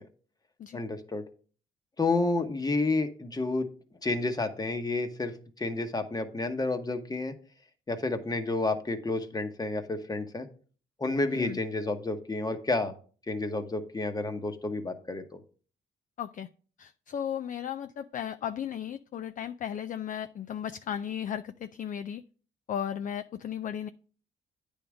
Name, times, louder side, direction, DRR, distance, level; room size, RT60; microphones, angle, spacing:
voice 1, 0.7-1.2 2.0-3.7 4.0-7.3 7.9-10.5 11.0-12.9 13.3-15.4, left 2 dB, 20° left, 7 dB, 1.0 m, -30 dB
voice 2, 16.2-16.5 16.8-22.2 22.7-23.9, left 9 dB, 40° left, 10 dB, 0.4 m, -35 dB
9.2 x 3.5 x 6.1 m, 0.42 s
cardioid pair, 90°, 20 cm